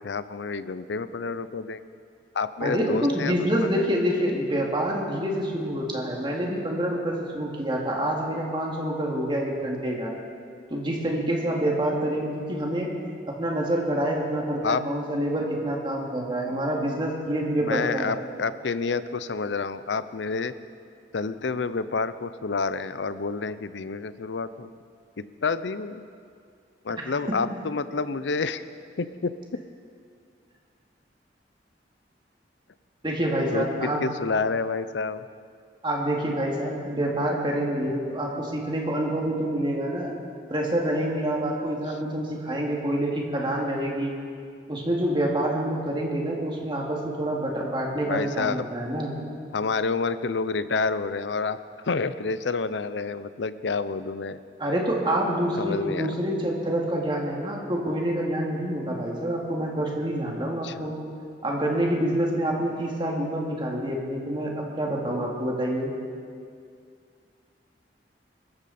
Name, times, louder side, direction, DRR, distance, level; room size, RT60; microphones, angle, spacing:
voice 1, 0.0-1.8 2.3-3.7 14.6-14.8 16.5-16.6 17.6-20.5 21.1-24.7 25.2-26.1 26.8-28.6 29.0-29.6 33.5-35.3 48.0-48.7 49.5-51.6 51.8-54.4 55.6-56.1 60.6-60.8, left 4 dB, 90° left, 14 dB, 0.6 m, -29 dB
voice 2, 2.6-10.1 10.7-12.9 13.4-18.2 33.0-34.0 35.8-40.1 40.5-44.1 44.7-49.1 54.6-60.9 61.4-65.9, right 1 dB, 30° right, -1 dB, 2.4 m, -27 dB
23.5 x 13.5 x 4.3 m, 2.3 s
head